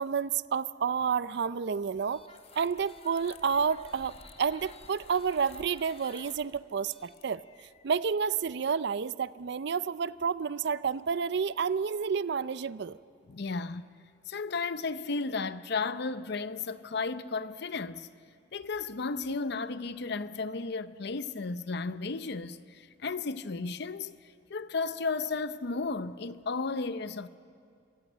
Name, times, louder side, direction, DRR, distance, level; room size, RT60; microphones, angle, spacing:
voice 1, 0.0-2.2 2.6-7.4 7.8-13.0, right 6 dB, 65° right, 0.4 m, -30 dB
sound 1, 2.1-8.0, left 4 dB, 35° left, 0.9 m, -53 dB
voice 2, 13.3-13.8 14.3-18.1 18.5-24.1 24.5-27.3, left 4 dB, 60° left, 0.7 m, -34 dB
26.0 x 15.0 x 9.0 m
head